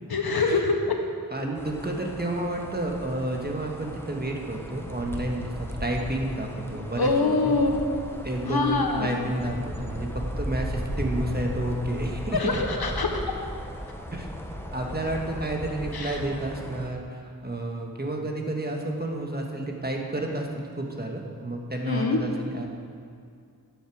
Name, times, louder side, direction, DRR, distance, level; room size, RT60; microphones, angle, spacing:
voice 1, 0.1-1.0 7.0-7.8 8.4-9.2 12.3-13.2 15.9-16.2 21.8-22.2, left 3 dB, 90° left, 3 dB, 1.2 m, -24 dB
voice 2, 1.3-7.5 8.2-12.6 14.1-14.3 14.7-22.7, right 1 dB, 25° right, 1 dB, 1.6 m, -30 dB
sound 1, 1.6-16.9, equal, 5° left, 1.1 m, -36 dB
13.5 x 8.1 x 4.9 m, 2.3 s
wide cardioid pair, 55°, 36 cm